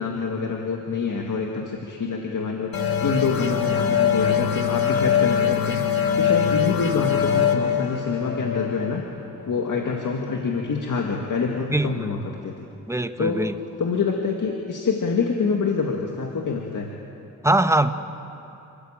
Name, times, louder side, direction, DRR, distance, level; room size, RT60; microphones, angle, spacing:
voice 1, 0.0-2.7 3.0-5.8 6.2-9.0 9.5-12.5 13.2-13.4 13.8-16.9, left 5 dB, 60° left, 1 dB, 2.0 m, -26 dB
sound 1, 2.7-10.0, left 8 dB, 80° left, 2.1 m, -23 dB
voice 2, 11.7-12.1 12.9-13.5 17.4-17.9, right 1 dB, 10° right, 9 dB, 1.1 m, -22 dB
30.0 x 14.0 x 8.9 m, 2.8 s
cardioid pair, 85°, 35 cm